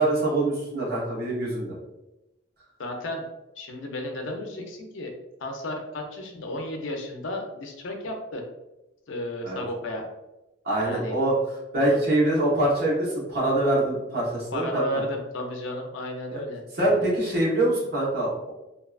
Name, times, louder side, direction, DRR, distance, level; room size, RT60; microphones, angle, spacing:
voice 1, 0.0-1.7 9.4-9.6 10.6-11.3 11.7-15.0 16.3-16.4 16.8-18.5, right 1 dB, 55° right, -6 dB, 1.0 m, -24 dB
voice 2, 2.8-3.3 3.6-5.1 5.4-8.4 9.1-10.1 10.8-11.2 11.8-12.0 14.5-17.1, left 1 dB, 80° left, 3 dB, 0.5 m, -33 dB
2.7 x 2.2 x 2.3 m, 0.97 s
head